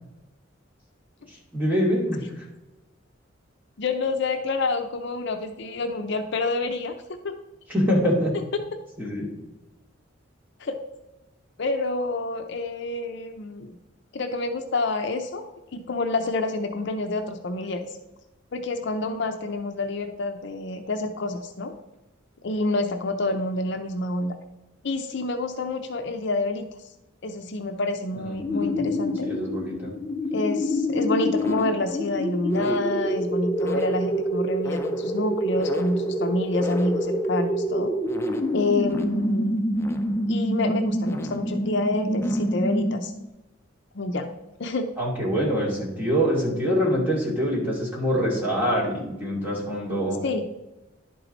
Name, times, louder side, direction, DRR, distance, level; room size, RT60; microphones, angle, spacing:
voice 1, 1.5-2.2 7.7-8.3 9.0-9.3 28.1-28.2 28.5-28.9 29.2-29.9 45.0-50.2, equal, 10° right, -6 dB, 2.4 m, -24 dB
voice 2, 3.8-6.9 7.2-7.4 8.5-8.6 10.6-10.8 11.6-13.8 14.1-15.5 15.7-17.9 18.5-21.7 22.4-24.3 24.8-26.7 27.2-29.3 30.3-37.9 38.5-39.6 40.3-43.1 43.9-44.3 44.6-44.9 50.2-50.5, left 2 dB, 60° left, 6 dB, 0.6 m, -28 dB
sound 1, 28.4-43.3, equal, 15° left, 0.5 m, -26 dB
11.0 x 4.6 x 4.0 m, 0.99 s
head